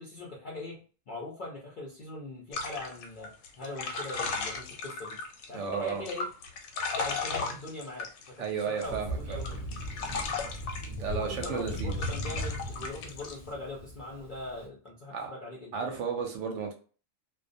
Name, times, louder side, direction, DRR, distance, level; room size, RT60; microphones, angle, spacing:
voice 1, 0.0-3.3 3.6-5.2 5.5-6.3 7.0-8.1 8.4-9.8 11.1-16.0, left 2 dB, 60° left, 0.5 m, -41 dB
sound 1, 2.5-5.5 5.9-9.0 9.3-10.9 11.4-13.3, left 4 dB, 85° left, 1.0 m, -36 dB
voice 2, 5.5-6.0 8.4-9.4 11.0-12.0 15.1-15.3 15.7-16.7, right 6 dB, 70° right, 0.8 m, -33 dB
Thunder, 8.8-14.5, equal, 50° right, 0.4 m, -37 dB
2.2 x 2.1 x 2.5 m
omnidirectional pair, 1.4 m